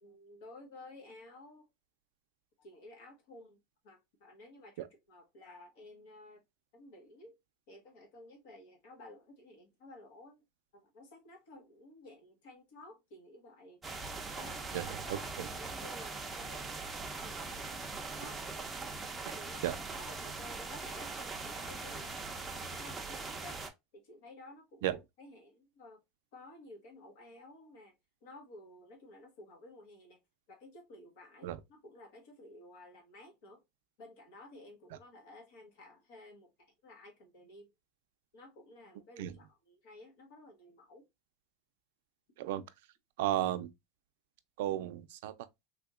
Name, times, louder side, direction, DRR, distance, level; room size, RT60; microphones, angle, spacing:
voice 1, 0.0-1.7 2.6-3.6 3.8-6.4 6.7-7.3 7.7-10.4 10.7-13.8 14.3-18.4 19.3-22.1 22.5-23.6 23.9-26.0 26.3-27.9 28.2-30.2 30.5-33.6 34.0-36.5 36.8-37.7 38.3-41.1, left 2 dB, 75° left, 1.0 m, -54 dB
sound 1, 13.8-23.7, right 3 dB, 10° right, 0.5 m, -41 dB
voice 2, 43.2-43.7 44.6-45.3, right 13 dB, 80° right, 0.4 m, -33 dB
3.5 x 2.8 x 2.3 m
supercardioid pair, 160°, 0 cm